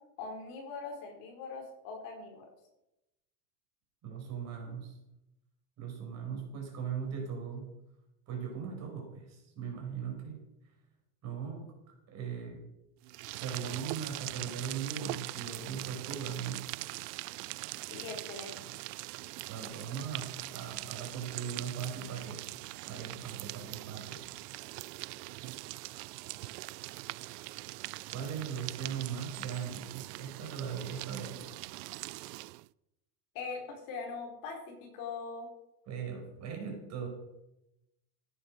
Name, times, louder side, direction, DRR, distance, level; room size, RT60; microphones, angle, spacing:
voice 1, 0.2-2.5 17.9-18.7 33.3-35.5, left 4 dB, 45° left, 1 dB, 4.5 m, -41 dB
voice 2, 4.0-5.0 5.8-7.7 8.3-10.4 11.2-11.7 12.1-12.6 13.4-16.7 19.5-24.2 28.1-31.4 35.9-37.1, right 7 dB, 35° right, 1 dB, 5.5 m, -39 dB
sound 1, 13.0-32.7, right 21 dB, 80° right, 0.6 m, -42 dB
15.0 x 9.7 x 6.6 m, 0.89 s
supercardioid pair, 170°, 47 cm